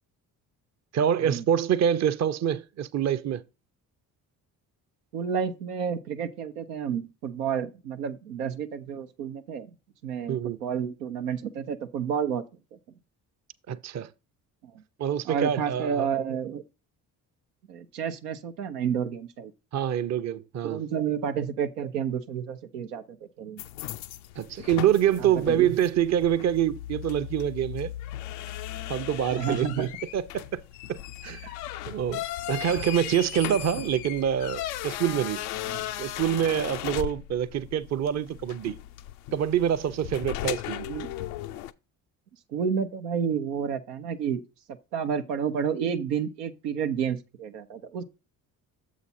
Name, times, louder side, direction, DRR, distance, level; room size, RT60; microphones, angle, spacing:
voice 1, 0.9-3.4 10.3-10.6 13.7-14.1 15.0-16.1 19.7-20.8 24.4-27.9 28.9-30.6 30.9-31.5 31.9-35.4 36.0-38.8 39.3-40.9, right 9 dB, 35° right, 0.6 m, -26 dB
voice 2, 5.1-9.7 10.0-12.4 15.3-16.6 17.7-19.5 20.6-23.6 25.5-25.7 29.3-29.9 35.7-35.9 40.8-41.1 42.5-44.4 44.9-48.0, right 7 dB, 90° right, 0.7 m, -30 dB
sound 1, 23.6-41.7, left 13 dB, 80° left, 0.6 m, -37 dB
7.1 x 5.0 x 4.2 m
hypercardioid pair, 50°, 46 cm